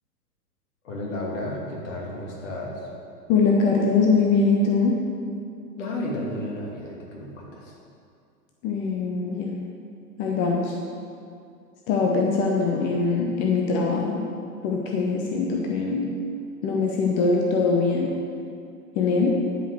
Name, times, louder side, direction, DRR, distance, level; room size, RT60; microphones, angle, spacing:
voice 1, 0.8-2.9 5.8-7.7, left 1 dB, 50° left, -3 dB, 2.8 m, -32 dB
voice 2, 3.3-5.0 8.6-9.5 10.2-10.8 11.9-14.2 14.6-16.1 16.6-18.1 18.9-19.4, left 4 dB, 20° left, -1 dB, 0.6 m, -22 dB
11.0 x 5.4 x 6.6 m, 2.4 s
figure-of-eight pair, 110°, 48 cm